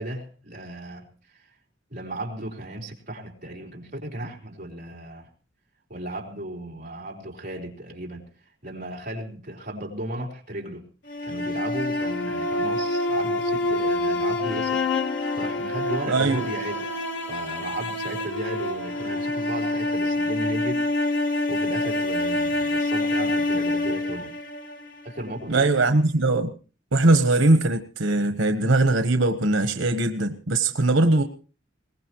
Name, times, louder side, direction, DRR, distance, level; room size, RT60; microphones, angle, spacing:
voice 1, 0.0-1.5 1.9-5.3 5.9-8.3 8.6-10.8 11.2-16.8 17.2-24.3 25.0-25.7, right 1 dB, 45° right, -1 dB, 4.0 m, -35 dB
sound 1, 11.1-25.2, left 2 dB, 65° left, 1.9 m, -26 dB
voice 2, 16.1-16.5 25.5-26.5 26.9-31.2, right 2 dB, 90° right, 9 dB, 1.2 m, -21 dB
22.0 x 19.0 x 3.1 m, 0.36 s
head